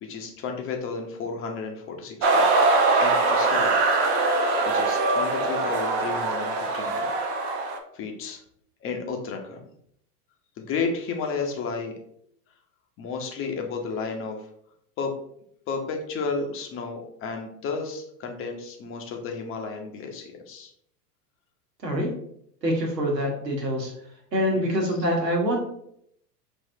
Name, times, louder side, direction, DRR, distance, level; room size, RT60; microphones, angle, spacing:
voice 1, 0.0-2.5 3.0-3.7 4.6-7.1 7.9-8.4 8.8-9.6 10.6-11.9 13.0-14.4 15.0-15.1 15.7-20.7 24.5-24.7, left 4 dB, 25° left, 3 dB, 0.7 m, -32 dB
sound 1, 2.2-7.8, right 3 dB, 25° right, 0.4 m, -22 dB
voice 2, 22.6-23.9 24.3-25.6, equal, 85° right, 0 dB, 1.3 m, -25 dB
5.1 x 2.7 x 2.7 m, 0.71 s
hypercardioid pair, 95°, 48 cm